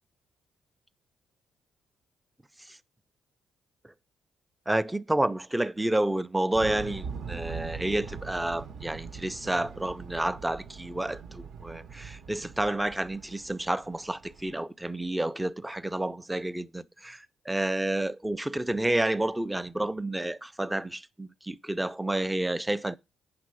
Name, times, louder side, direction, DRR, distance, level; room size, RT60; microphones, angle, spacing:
voice 1, 4.7-23.0, right 1 dB, 10° right, 0.4 m, -30 dB
sound 1, 6.5-14.6, right 6 dB, 70° right, 0.8 m, -42 dB
9.5 x 5.5 x 4.7 m
cardioid pair, 90°, 0 cm